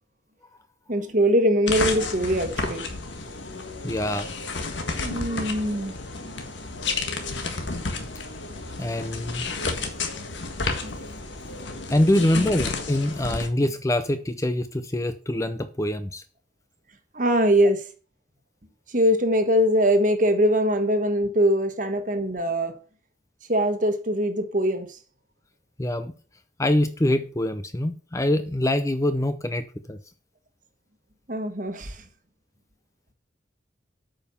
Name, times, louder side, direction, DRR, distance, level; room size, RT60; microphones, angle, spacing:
voice 1, 0.9-2.8 5.0-5.9 10.8-11.0 12.3-12.5 13.3-13.4 17.1-17.9 18.9-22.7 23.5-25.0 31.3-32.0, equal, 40° right, 1.4 m, -22 dB
sound 1, 1.7-13.5, left 3 dB, 70° left, 1.7 m, -31 dB
voice 2, 3.8-4.3 8.8-9.5 11.9-16.2 25.8-26.1 26.6-30.0, left 1 dB, 15° left, 0.5 m, -24 dB
8.7 x 5.5 x 7.0 m
head